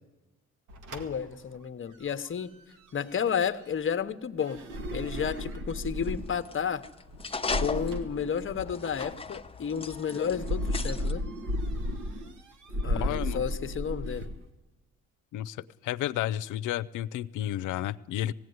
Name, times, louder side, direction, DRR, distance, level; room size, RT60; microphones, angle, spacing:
sound 1, 0.7-14.3, right 1 dB, 80° right, 2.1 m, -50 dB
voice 1, 0.9-2.5 2.9-4.6 4.9-6.8 7.6-11.2 12.8-14.3, left 7 dB, 40° left, 11 dB, 1.0 m, -32 dB
sound 2, 4.6-6.5 7.4-8.8 10.2-12.4 12.7-14.4, left 1 dB, 45° right, 1.5 m, -33 dB
sound 3, 6.0-11.1, left 4 dB, 20° left, 0.9 m, -38 dB
voice 2, 13.0-13.4 15.3-18.3, left 13 dB, 85° left, 14 dB, 0.6 m, -32 dB
18.5 x 16.5 x 9.5 m, 1.1 s
cardioid pair, 90°, 30 cm